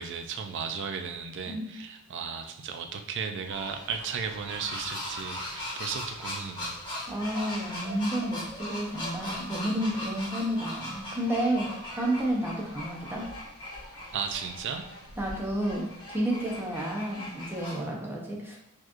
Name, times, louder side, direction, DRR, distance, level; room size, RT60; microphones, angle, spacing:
voice 1, 0.0-6.8 14.1-14.9, right 6 dB, 55° right, 6 dB, 0.4 m, -35 dB
sound 1, 3.5-17.9, left 1 dB, 20° left, 1.2 m, -39 dB
voice 2, 7.1-11.7 11.9-13.3 15.2-18.6, right 1 dB, 10° right, -2 dB, 0.7 m, -31 dB
4.5 x 2.9 x 2.5 m, 0.88 s
head